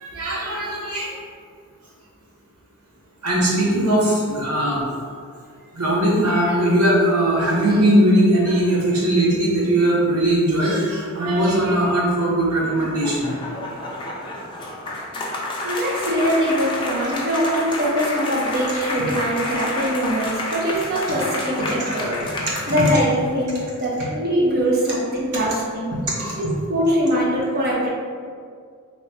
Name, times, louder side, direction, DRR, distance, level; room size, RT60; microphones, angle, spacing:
voice 1, 0.0-1.1 3.2-4.8 5.7-13.3 21.8-22.0 22.5-22.6 26.2-26.4, right 1 dB, 85° right, -5 dB, 1.0 m, -19 dB
sound 1, 12.4-23.4, left 1 dB, 20° left, 0.5 m, -30 dB
voice 2, 15.6-22.2 22.7-25.9 26.4-27.9, equal, 45° right, -4 dB, 0.6 m, -22 dB
3.0 x 2.2 x 4.2 m, 2.1 s
head